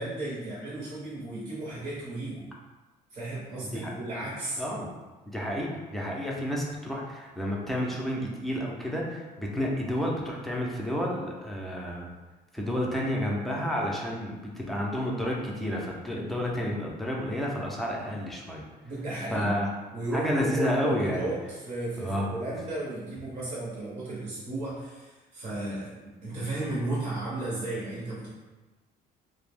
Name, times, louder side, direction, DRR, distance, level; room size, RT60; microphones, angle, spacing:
voice 1, 0.0-2.5 3.1-4.6 18.8-19.6 19.9-28.3, right 2 dB, 45° right, -8 dB, 0.8 m, -34 dB
voice 2, 5.3-12.1 12.5-18.6 19.3-19.7 20.1-21.3 22.0-22.3, equal, ahead, -3 dB, 0.5 m, -30 dB
2.4 x 2.0 x 3.4 m, 1.2 s
cardioid pair, 110°, 17 cm